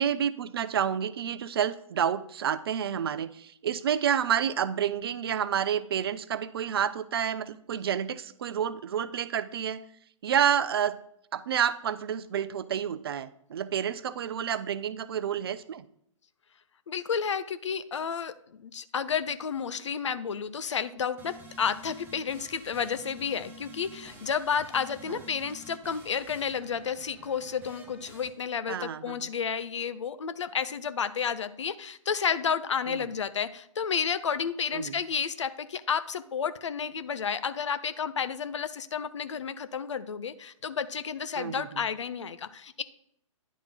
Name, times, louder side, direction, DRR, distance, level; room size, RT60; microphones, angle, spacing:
voice 1, 0.0-9.8 10.2-11.0 11.3-15.8 25.1-25.2 28.7-29.3 32.9-33.0 34.7-35.0 41.3-41.8, right 9 dB, 45° right, 15 dB, 0.4 m, -29 dB
voice 2, 16.9-18.3 18.6-42.8, left 7 dB, 60° left, 13 dB, 0.5 m, -31 dB
sound 1, 21.2-28.3, equal, 10° right, 1.0 m, -49 dB
10.0 x 3.6 x 4.2 m, 0.70 s
figure-of-eight pair, 120°, 17 cm